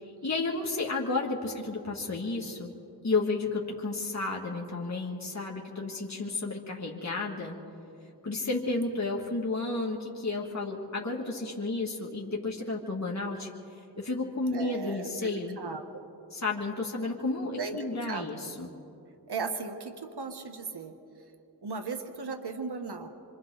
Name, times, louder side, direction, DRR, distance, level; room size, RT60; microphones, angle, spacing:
voice 1, 0.2-2.7 3.0-7.5 8.2-13.5 14.0-15.6 16.3-18.7, left 3 dB, 40° left, -2 dB, 2.3 m, -32 dB
voice 2, 14.5-15.1 15.6-15.8 17.6-17.8 18.1-18.3 19.3-20.9 21.6-23.1, right 4 dB, 70° right, 6 dB, 1.4 m, -36 dB
26.5 x 25.5 x 4.0 m, 2.7 s
cardioid pair, 50°, 41 cm